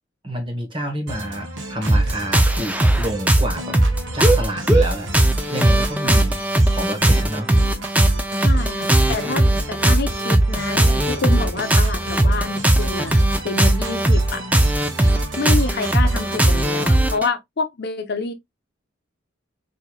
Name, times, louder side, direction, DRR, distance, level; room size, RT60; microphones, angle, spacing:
voice 1, 0.2-3.8 4.1-6.4 6.7-7.5, right 1 dB, 25° right, 1.0 m, -29 dB
sound 1, 1.1-17.1, right 1 dB, 65° right, 1.1 m, -34 dB
sound 2, 1.9-17.3, right 1 dB, 5° right, 0.4 m, -18 dB
voice 2, 8.4-14.4 15.4-18.3, left 4 dB, 55° left, 0.7 m, -28 dB
4.6 x 2.8 x 2.2 m
head